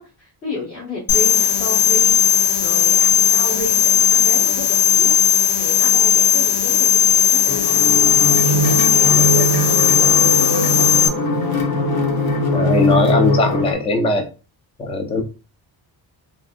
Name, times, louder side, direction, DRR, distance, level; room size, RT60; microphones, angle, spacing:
voice 1, 0.0-2.2 2.6-5.1 5.6-11.2, left 2 dB, 30° left, -5 dB, 1.2 m, -32 dB
sound 1, 1.1-11.1, left 8 dB, 75° left, 0.6 m, -16 dB
sound 2, 7.5-13.7, left 1 dB, 60° left, 1.0 m, -20 dB
voice 2, 12.5-14.3 14.8-15.2, left 2 dB, 15° left, 4 dB, 0.4 m, -19 dB
3.4 x 2.6 x 2.5 m, 0.33 s
cardioid pair, 165°, 41 cm